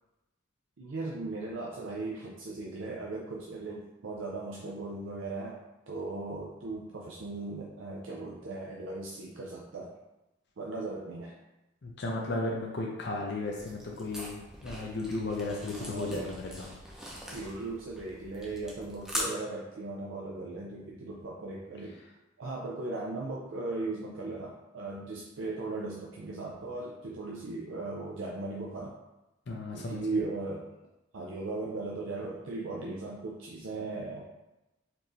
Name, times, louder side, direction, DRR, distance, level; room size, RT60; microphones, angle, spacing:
voice 1, 0.8-5.6 5.9-9.9 10.6-11.3 15.8-16.3 17.3-22.0 22.4-28.9 29.7-30.7 31.1-34.2, right 3 dB, 85° right, -3 dB, 0.5 m, -37 dB
voice 2, 11.8-16.7 29.5-30.0, left 2 dB, 60° left, -2 dB, 0.6 m, -35 dB
sound 1, 13.5-19.2, equal, 5° right, 0.6 m, -42 dB
4.4 x 3.0 x 2.7 m, 0.99 s
head